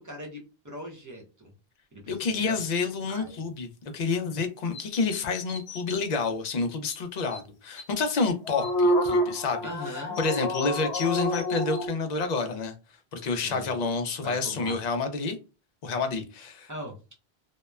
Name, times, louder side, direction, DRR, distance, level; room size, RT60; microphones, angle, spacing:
voice 1, 0.0-1.5 1.9-2.5 3.1-3.4 8.6-8.7 9.6-10.2 13.3-13.7 14.2-14.8 16.7-17.0, equal, 20° right, 0.6 m, -40 dB
voice 2, 2.1-12.7 13.1-15.4 15.8-16.7, left 4 dB, 55° left, 0.5 m, -29 dB
sound 1, 4.7-6.0 6.5-6.6 6.9-7.0 7.3-7.4 7.8-7.9 8.2-11.9, equal, 80° left, 0.9 m, -28 dB
2.8 x 2.1 x 2.2 m
omnidirectional pair, 1.1 m